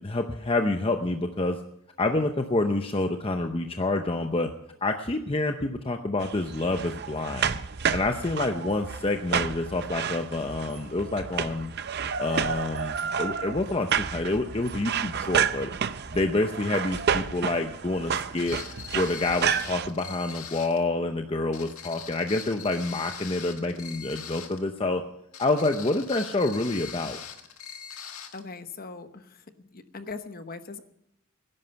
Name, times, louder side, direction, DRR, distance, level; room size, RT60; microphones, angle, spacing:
voice 1, 0.0-1.6 2.0-4.5 4.8-7.6 7.9-11.7 12.2-15.7 16.1-18.6 18.9-25.0 25.4-27.2, left 2 dB, 25° left, 6 dB, 0.7 m, -27 dB
sound 1, 6.2-19.9, right 7 dB, 50° right, 0.6 m, -30 dB
sound 2, 18.4-20.8 21.5-24.6 25.3-28.4, left 8 dB, 75° left, 1.7 m, -42 dB
voice 2, 28.3-30.8, left 4 dB, 40° left, 9 dB, 1.0 m, -40 dB
18.5 x 11.0 x 5.8 m, 0.78 s
head